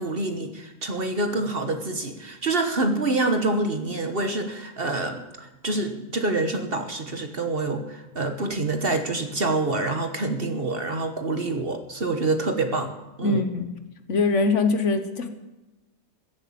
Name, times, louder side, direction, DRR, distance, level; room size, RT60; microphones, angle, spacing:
voice 1, 0.0-12.9 13.2-13.4, right 2 dB, 40° right, 6 dB, 1.3 m, -26 dB
voice 2, 13.2-13.7 14.1-15.3, left 3 dB, 55° left, 8 dB, 1.4 m, -22 dB
14.5 x 8.3 x 8.5 m, 1.1 s
omnidirectional pair, 1.6 m